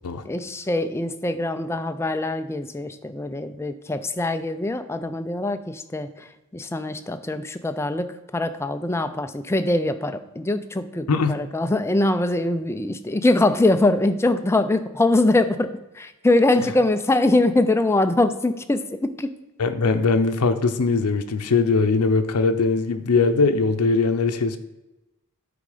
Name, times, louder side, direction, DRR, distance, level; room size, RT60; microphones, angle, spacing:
voice 1, 0.2-8.1 8.3-19.3, left 2 dB, 10° left, 9 dB, 0.4 m, -23 dB
voice 2, 19.6-24.6, left 4 dB, 90° left, 8 dB, 0.6 m, -20 dB
8.9 x 3.9 x 4.9 m, 1.0 s
head